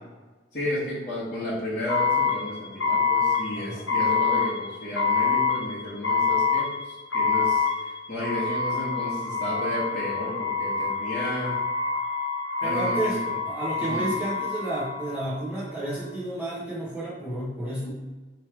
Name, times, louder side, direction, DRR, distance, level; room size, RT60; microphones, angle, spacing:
voice 1, 0.5-11.5 12.6-13.2 13.8-14.1, left 1 dB, 40° left, -11 dB, 1.3 m, -33 dB
sound 1, 1.9-15.5, left 5 dB, 70° left, 0.9 m, -26 dB
voice 2, 3.5-3.9 12.6-13.2 13.5-18.0, right 1 dB, 10° right, -10 dB, 1.2 m, -31 dB
3.2 x 3.2 x 4.7 m, 1.2 s
head